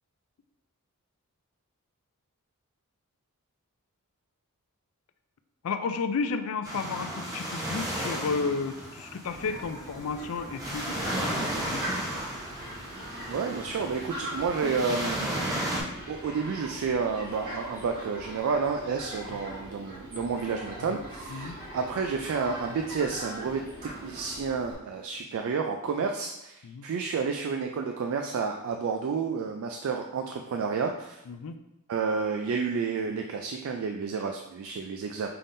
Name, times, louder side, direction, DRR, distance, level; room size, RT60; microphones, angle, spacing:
voice 1, 5.6-11.9 20.9-21.0 21.3-21.5 26.6-26.9 31.3-31.5, left 5 dB, 65° left, 9 dB, 0.4 m, -32 dB
sound 1, 6.6-15.8, right 1 dB, 15° right, 0.8 m, -34 dB
Fowl, 9.2-24.7, right 1 dB, 45° right, 1.7 m, -41 dB
voice 2, 13.3-15.5 16.1-31.2 31.9-35.3, right 5 dB, 65° right, 4 dB, 0.3 m, -30 dB
5.6 x 3.5 x 2.6 m, 0.90 s
head